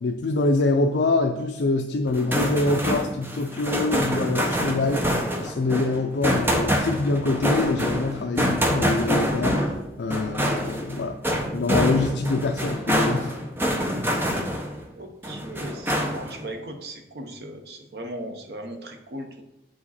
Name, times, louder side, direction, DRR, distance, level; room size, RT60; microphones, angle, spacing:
voice 1, 0.0-5.1 5.4-11.2 11.5-13.3, left 3 dB, 70° left, 4 dB, 0.4 m, -25 dB
sound 1, 2.1-14.8 15.2-16.4, equal, 10° right, 0.7 m, -26 dB
voice 2, 15.0-19.4, right 1 dB, 65° right, 5 dB, 0.8 m, -37 dB
7.4 x 4.9 x 4.2 m, 0.94 s
head